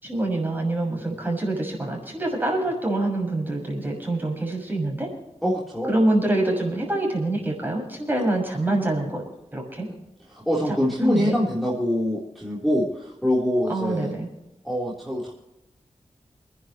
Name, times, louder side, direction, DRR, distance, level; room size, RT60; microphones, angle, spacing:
voice 1, 0.0-5.1 5.9-9.2 9.5-9.9 11.0-11.4 13.7-14.3, right 2 dB, 15° right, 0 dB, 6.4 m, -25 dB
voice 2, 5.4-5.9 10.3-14.1 14.6-15.3, equal, ahead, -6 dB, 3.8 m, -24 dB
29.5 x 10.5 x 3.1 m, 0.94 s
wide cardioid pair, 105°, 12 cm